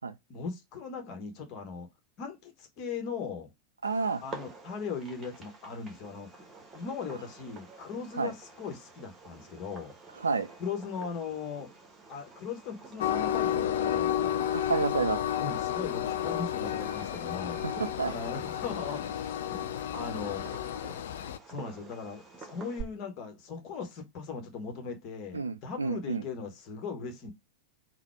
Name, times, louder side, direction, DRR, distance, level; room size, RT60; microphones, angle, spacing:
voice 1, 0.3-1.9 2.2-3.5 4.2-6.3 6.7-9.9 10.6-11.7 12.1-14.5 15.4-17.6 18.0-19.7 19.9-20.4 21.5-27.3, left 5 dB, 40° left, 1.2 m, -39 dB
Fireworks, 3.8-22.8, right 4 dB, 20° right, 1.2 m, -49 dB
voice 2, 3.8-4.2 8.2-8.3 10.2-10.5 14.5-15.2 17.6-18.1 19.6-19.7 25.3-26.2, right 4 dB, 75° right, 0.4 m, -30 dB
Train, 13.0-21.4, left 10 dB, 60° left, 0.3 m, -31 dB
4.0 x 2.2 x 4.3 m
figure-of-eight pair, 90°, 0 cm